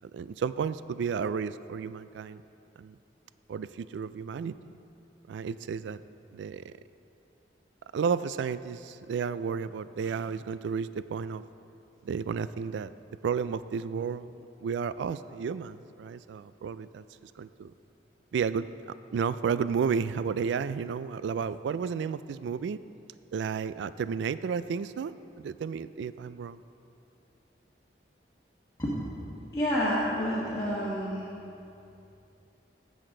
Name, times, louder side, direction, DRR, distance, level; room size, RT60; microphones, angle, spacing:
voice 1, 0.0-2.4 2.8-3.0 3.5-4.7 5.3-6.0 6.3-6.7 7.9-11.4 12.0-12.9 13.2-14.3 14.6-17.7 18.3-22.8 23.3-26.6, right 6 dB, 80° right, 15 dB, 0.3 m, -32 dB
voice 2, 29.5-31.3, equal, 20° left, -9 dB, 1.5 m, -29 dB
15.5 x 6.4 x 3.8 m, 2.7 s
head